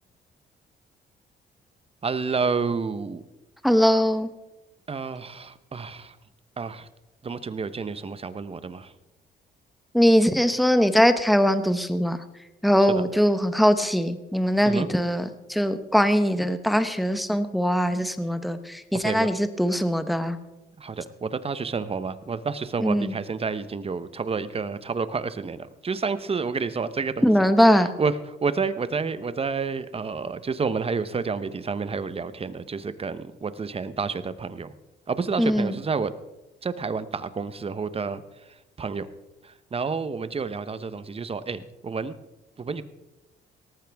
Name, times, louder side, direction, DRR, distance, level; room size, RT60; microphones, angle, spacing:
voice 1, 2.0-3.2 4.9-6.2 6.6-6.9 7.2-8.9 12.9-13.0 14.7-14.9 18.9-19.3 20.8-27.3 28.0-34.7 35.1-36.1 36.6-38.2 38.8-39.1 39.4-42.1 42.6-42.8, right 5 dB, 30° right, 13 dB, 0.9 m, -29 dB
voice 2, 3.6-4.3 9.9-12.2 12.6-20.4 22.8-23.1 27.2-27.9 35.4-35.7, equal, ahead, 10 dB, 1.0 m, -21 dB
18.5 x 14.0 x 3.5 m, 1.0 s
cardioid pair, 90°, 20 cm